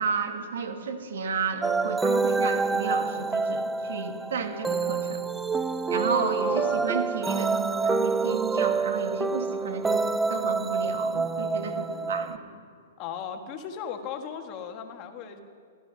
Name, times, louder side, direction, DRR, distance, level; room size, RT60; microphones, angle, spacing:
voice 1, 0.0-5.2 5.9-12.4, right 5 dB, 75° right, 5 dB, 2.0 m, -32 dB
sound 1, 1.6-12.4, right 4 dB, 10° right, 0.4 m, -27 dB
voice 2, 6.4-6.9 11.7-12.1 13.0-15.4, left 8 dB, 40° left, 6 dB, 1.5 m, -37 dB
17.5 x 13.0 x 5.7 m, 2.2 s
hypercardioid pair, 135°, 0 cm